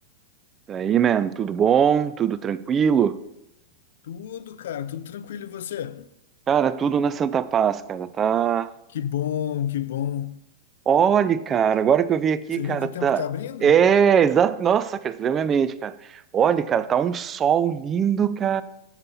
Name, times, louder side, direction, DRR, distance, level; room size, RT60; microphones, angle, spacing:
voice 1, 0.7-3.2 6.5-8.7 10.9-13.2 13.6-18.6, right 8 dB, 25° right, 0.3 m, -21 dB
voice 2, 4.0-6.1 8.9-10.4 12.6-13.8, left 10 dB, 75° left, 0.4 m, -30 dB
7.2 x 4.0 x 5.5 m
hypercardioid pair, 125°, 0 cm